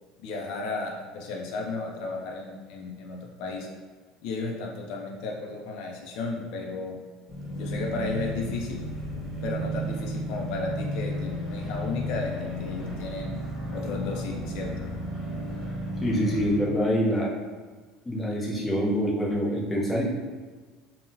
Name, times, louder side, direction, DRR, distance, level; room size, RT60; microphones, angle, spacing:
voice 1, 0.2-3.7 4.2-7.0 7.6-8.8 9.4-13.4 13.7-14.7, left 3 dB, 60° left, 0 dB, 0.4 m, -34 dB
sound 1, 7.3-16.6, equal, 10° right, 1.2 m, -33 dB
voice 2, 16.0-17.3 18.1-20.0, equal, 10° left, -4 dB, 0.5 m, -25 dB
3.7 x 2.0 x 2.6 m, 1.4 s
cardioid pair, 155°, 0 cm